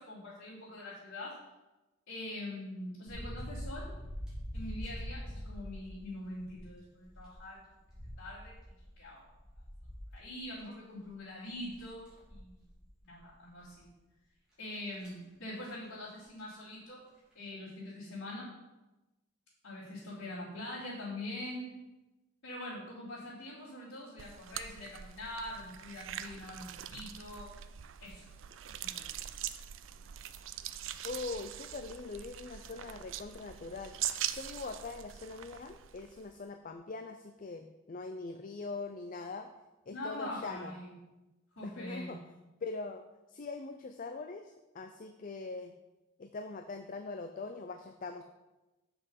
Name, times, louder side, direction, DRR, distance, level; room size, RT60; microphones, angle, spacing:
voice 1, 0.0-1.4 2.1-3.9 4.5-7.6 8.2-9.2 10.1-12.6 13.0-13.9 14.6-17.0 17.3-18.5 19.6-21.7 22.4-27.5 28.0-28.2 28.8-29.1 39.9-40.9 41.6-42.2, left 1 dB, 90° left, -13 dB, 3.2 m, -43 dB
sound 1, 3.0-6.6 7.0-10.6 11.0-11.1 11.5-12.8 13.1-13.3 13.7-13.8 14.7-15.2 16.2-16.4 17.2-17.4, equal, 5° right, 3.2 m, -44 dB
sound 2, 24.2-36.4, right 11 dB, 65° right, 0.4 m, -42 dB
voice 2, 31.0-33.9 34.3-39.5 39.9-40.7 41.6-42.2 42.6-45.7 46.2-48.2, left 3 dB, 40° left, 7 dB, 0.4 m, -42 dB
7.5 x 5.9 x 5.3 m, 1.0 s
head